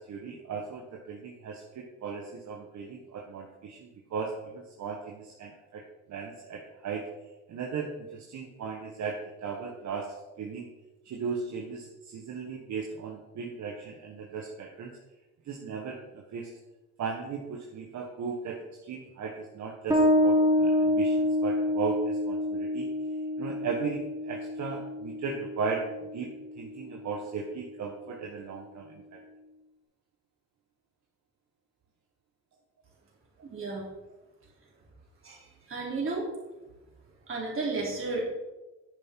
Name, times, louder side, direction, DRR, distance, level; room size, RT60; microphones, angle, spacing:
voice 1, 0.0-5.8 6.1-7.0 7.5-10.7 11.0-14.9 15.4-16.5 17.0-22.9 23.4-25.8 26.1-26.3 26.5-29.2, right 5 dB, 65° right, 1 dB, 1.3 m, -37 dB
Bass guitar, 19.9-27.1, left 1 dB, 10° right, 1.9 m, -27 dB
voice 2, 33.4-33.8 35.2-35.4 35.7-36.3 37.3-38.2, right 3 dB, 45° right, -3 dB, 3.7 m, -32 dB
9.8 x 7.3 x 4.5 m, 1.1 s
cardioid pair, 90°, 30 cm